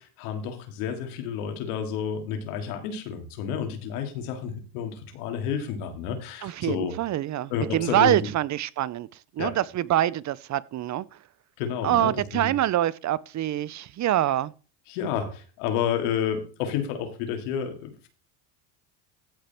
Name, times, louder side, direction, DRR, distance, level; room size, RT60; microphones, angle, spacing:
voice 1, 0.0-6.9 7.5-8.3 9.4-9.6 11.6-12.5 14.9-18.1, left 8 dB, 75° left, 3.0 m, -30 dB
voice 2, 6.4-9.1 9.3-11.2 11.8-14.5, right 13 dB, 40° right, 0.7 m, -25 dB
15.0 x 5.1 x 4.5 m
supercardioid pair, 95°, 44 cm